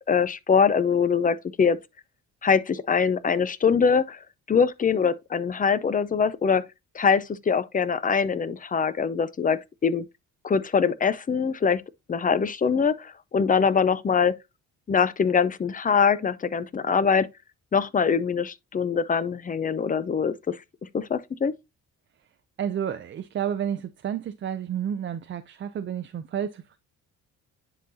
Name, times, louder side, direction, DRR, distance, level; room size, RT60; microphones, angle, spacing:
voice 1, 0.1-1.8 2.4-4.2 4.5-6.6 6.9-10.1 10.4-11.8 12.1-14.3 14.9-17.3 17.7-20.6 20.9-21.5, left 6 dB, 30° left, 0.6 m, -23 dB
voice 2, 22.6-26.8, right 9 dB, 40° right, 0.5 m, -30 dB
10.0 x 3.9 x 2.7 m
cardioid pair, 90°, 30 cm